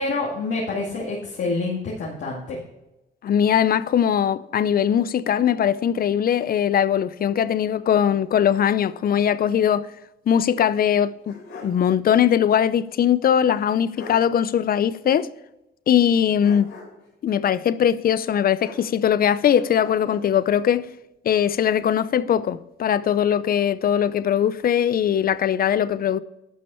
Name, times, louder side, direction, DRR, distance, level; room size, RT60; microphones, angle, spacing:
voice 1, 0.0-2.6, left 3 dB, 70° left, 2.3 m, -27 dB
voice 2, 3.2-9.9 10.3-15.3 15.9-16.7 17.2-20.9 21.2-26.2, left 9 dB, 50° left, 0.5 m, -20 dB
sound 1, 10.8-11.9 12.2-12.3 13.6-13.7 13.9-14.3 16.4-17.1 18.6-19.2 19.5-20.3, left 3 dB, 90° left, 4.0 m, -42 dB
11.0 x 6.3 x 4.4 m
cardioid pair, 90°, 20 cm